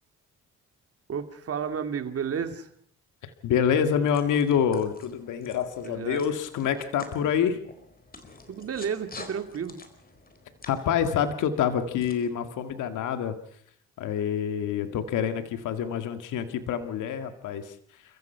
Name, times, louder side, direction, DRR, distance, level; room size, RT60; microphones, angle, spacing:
voice 1, 1.1-2.7 5.8-6.2 8.5-9.8, right 7 dB, 50° right, 8 dB, 2.4 m, -32 dB
voice 2, 3.4-7.6 10.7-13.3 14.0-17.7, left 8 dB, 80° left, 8 dB, 2.1 m, -27 dB
sound 1, 3.9-12.1, left 3 dB, 30° left, 4.3 m, -49 dB
29.5 x 15.0 x 5.8 m, 0.62 s
cardioid pair, 90°, 30 cm